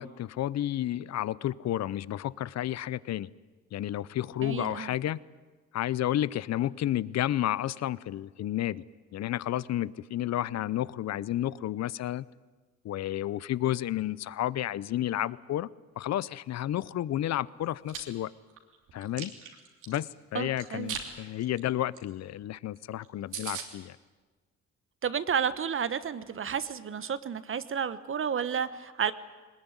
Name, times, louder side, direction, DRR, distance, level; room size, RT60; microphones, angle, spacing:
voice 1, 0.0-3.3 3.7-5.2 5.7-8.8 9.1-12.3 12.8-15.7 16.0-18.3 18.9-19.3 19.9-24.0, left 13 dB, 60° left, 20 dB, 0.7 m, -31 dB
voice 2, 4.4-4.9 20.3-21.0 25.0-29.1, right 7 dB, 45° right, 14 dB, 1.1 m, -31 dB
Chewing mastication, 17.6-18.0 18.5-20.0 20.6-21.1 21.4-21.6 21.9-22.0 22.3-22.4 22.8-22.9 23.0-23.1 23.3-23.7, right 8 dB, 90° right, 3.2 m, -38 dB
20.5 x 20.0 x 9.8 m, 1.3 s
cardioid pair, 90°, 30 cm